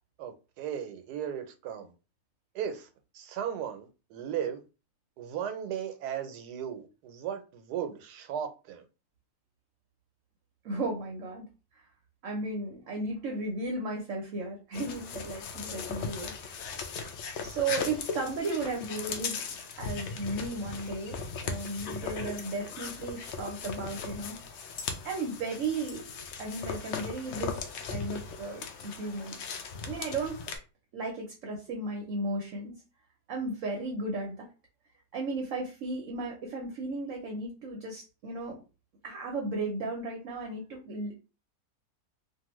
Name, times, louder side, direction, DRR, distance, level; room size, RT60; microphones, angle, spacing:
voice 1, 0.2-1.9 2.5-2.9 3.1-4.6 5.2-8.8, right 9 dB, 90° right, 1.2 m, -36 dB
voice 2, 10.6-11.5 11.7-11.8 12.2-16.3 17.4-19.4 19.8-24.4 25.0-29.4 29.8-30.4 30.9-32.7 33.3-34.5 35.1-38.6 39.0-41.1, right 2 dB, 60° right, 0.9 m, -35 dB
sound 1, 14.7-30.6, left 5 dB, 70° left, 0.7 m, -38 dB
2.7 x 2.5 x 2.9 m
omnidirectional pair, 1.7 m